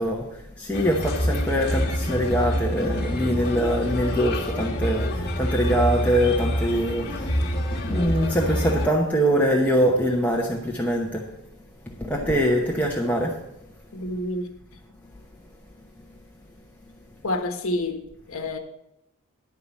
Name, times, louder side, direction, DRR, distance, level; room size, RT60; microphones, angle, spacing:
voice 1, 0.0-11.3 11.8-13.4, equal, 5° left, -2 dB, 0.9 m, -24 dB
Bird, 0.7-8.9, equal, 45° left, 1.5 m, -26 dB
voice 2, 13.9-14.5 17.2-18.6, left 1 dB, 65° left, 5 dB, 1.1 m, -28 dB
11.0 x 4.8 x 7.1 m, 0.86 s
head